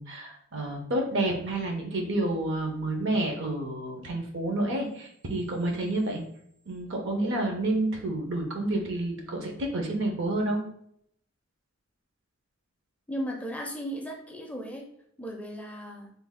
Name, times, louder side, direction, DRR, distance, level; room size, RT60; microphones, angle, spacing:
voice 1, 0.0-6.2 6.7-10.6, right 1 dB, 65° right, 2 dB, 0.7 m, -29 dB
voice 2, 13.1-14.8 15.2-16.1, equal, 5° left, 1 dB, 0.4 m, -36 dB
3.3 x 2.3 x 3.5 m, 0.71 s
head